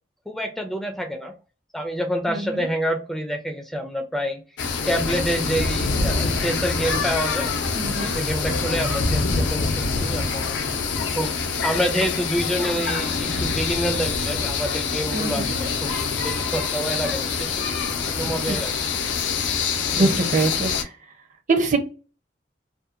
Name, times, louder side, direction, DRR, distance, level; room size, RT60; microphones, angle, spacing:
voice 1, 0.3-1.4 1.7-4.4 4.9-7.5 8.0-10.5 11.2-11.3 11.6-17.8 18.1-18.8 20.0-20.2, equal, ahead, 4 dB, 0.3 m, -27 dB
voice 2, 2.3-2.7 7.7-8.1 15.1-15.5 18.2-18.6 20.0-20.9 21.5-21.8, right 3 dB, 45° right, 6 dB, 0.6 m, -24 dB
sound 1, 4.6-20.8, left 4 dB, 80° left, 0.5 m, -25 dB
2.6 x 2.1 x 2.4 m, 0.33 s
head